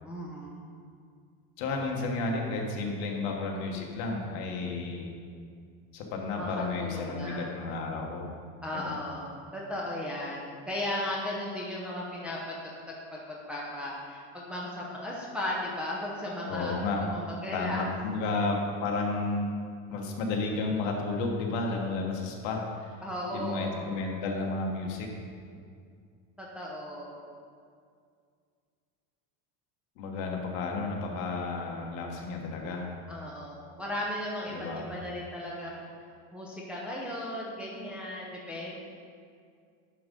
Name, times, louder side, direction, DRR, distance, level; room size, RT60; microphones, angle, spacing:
voice 1, 0.0-0.7 6.4-7.5 8.6-12.5 12.9-16.8 17.1-17.8 23.0-23.9 26.4-27.2 33.1-35.8 36.3-38.8, left 1 dB, 5° right, -5 dB, 0.6 m, -36 dB
voice 2, 1.6-5.1 5.9-8.3 8.7-9.0 16.5-17.0 17.5-19.5 19.9-23.0 23.3-25.1 30.0-32.9 34.5-34.8, left 3 dB, 60° left, 1 dB, 1.3 m, -32 dB
10.5 x 3.7 x 5.3 m, 2.2 s
cardioid pair, 175°, 37 cm